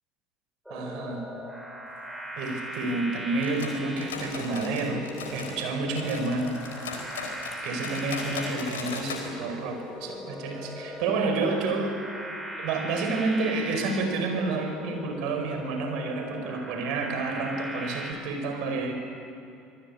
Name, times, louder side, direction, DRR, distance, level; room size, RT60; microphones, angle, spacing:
sound 1, 0.7-18.1, equal, ahead, 5.3 m, -39 dB
voice 1, 0.7-1.2 2.4-6.6 7.6-12.0 12.6-18.9, right 3 dB, 55° right, 4 dB, 4.9 m, -29 dB
sound 2, 3.4-5.7 5.9-9.3 9.5-9.6 10.0-10.1 10.7-10.8, left 5 dB, 70° left, 4.1 m, -38 dB
26.5 x 19.5 x 8.6 m, 2.6 s
figure-of-eight pair, 70°, 0 cm